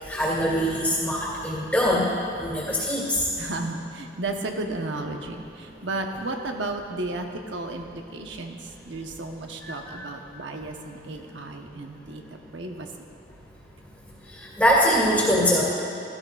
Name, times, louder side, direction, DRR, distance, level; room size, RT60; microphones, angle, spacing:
voice 1, 0.1-2.1 2.4-3.0 9.6-10.0 14.6-15.6, equal, 5° left, -7 dB, 2.0 m, -22 dB
voice 2, 3.4-12.2 12.5-12.9, right 2 dB, 90° right, 3 dB, 1.0 m, -33 dB
16.0 x 12.5 x 2.4 m, 2.8 s
head